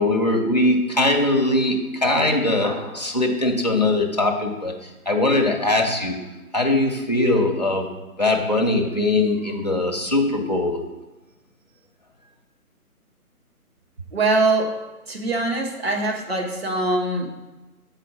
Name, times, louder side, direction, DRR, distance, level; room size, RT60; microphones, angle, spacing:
voice 1, 0.0-6.2 6.5-7.9 8.2-10.8, left 2 dB, 30° left, 1 dB, 0.5 m, -21 dB
voice 2, 14.1-14.8 15.1-17.4, right 2 dB, 45° right, 2 dB, 0.9 m, -23 dB
7.4 x 4.0 x 4.0 m, 1.1 s
figure-of-eight pair, 150°, 45 cm